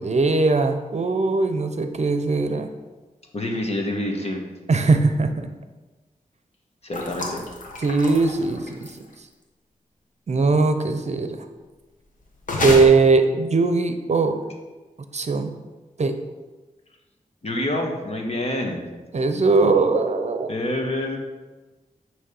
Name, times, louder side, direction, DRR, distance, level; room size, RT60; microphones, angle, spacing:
voice 1, 0.0-2.7 4.7-5.5 7.8-9.0 10.3-11.4 12.6-14.4 15.1-15.5 16.0-16.2 19.1-20.5, right 3 dB, 55° right, 7 dB, 0.6 m, -20 dB
voice 2, 3.3-4.4 6.8-7.4 17.4-18.8 20.5-21.2, left 1 dB, 50° left, 1 dB, 1.4 m, -27 dB
sound 1, 6.9-9.1 12.4-12.8, left 2 dB, 65° left, 1.4 m, -29 dB
9.6 x 3.2 x 5.4 m, 1.2 s
cardioid pair, 60°, 14 cm